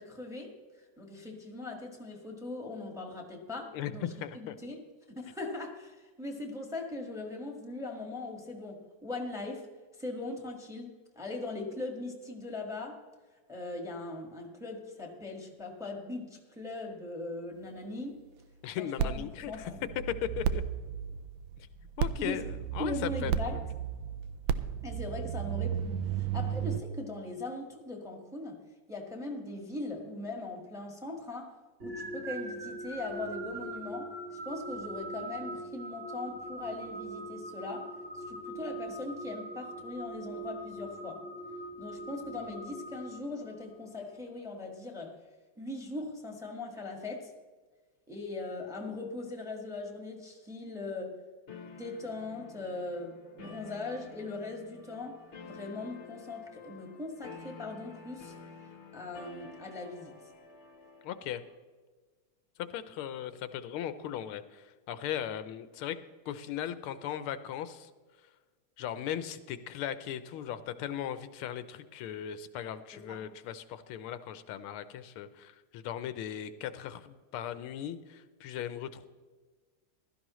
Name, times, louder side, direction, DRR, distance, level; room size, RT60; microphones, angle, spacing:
voice 1, 0.0-9.7 9.9-13.0 13.5-18.2 18.8-19.8 22.2-22.4 22.8-23.6 24.8-28.6 28.9-34.1 34.4-41.2 41.8-45.2 45.6-47.3 48.1-51.1 51.7-58.3 58.9-60.2 72.9-73.2, left 2 dB, ahead, 2 dB, 1.4 m, -40 dB
voice 2, 3.7-4.6 18.6-19.7 20.1-20.6 21.6-21.7 22.0-23.3 61.0-61.4 62.6-66.0 66.3-67.9 68.8-79.1, left 10 dB, 85° left, 12 dB, 1.5 m, -38 dB
sound 1, 19.0-26.8, right 9 dB, 75° right, 1.3 m, -34 dB
sound 2, 31.8-43.8, right 1 dB, 35° right, 2.1 m, -41 dB
sound 3, 51.5-61.5, left 4 dB, 45° left, 1.0 m, -50 dB
16.0 x 12.5 x 3.1 m, 1.4 s
omnidirectional pair, 2.4 m